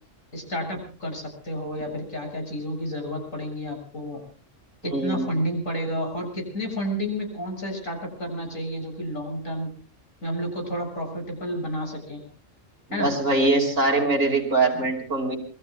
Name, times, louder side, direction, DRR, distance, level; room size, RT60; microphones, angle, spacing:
voice 1, 0.3-4.2 4.8-9.7 10.2-12.2 12.9-13.1, equal, 90° left, 1 dB, 7.9 m, -30 dB
voice 2, 4.9-5.3 12.9-15.4, right 2 dB, 80° right, 2 dB, 5.6 m, -22 dB
28.0 x 23.0 x 2.3 m, 0.40 s
omnidirectional pair, 1.4 m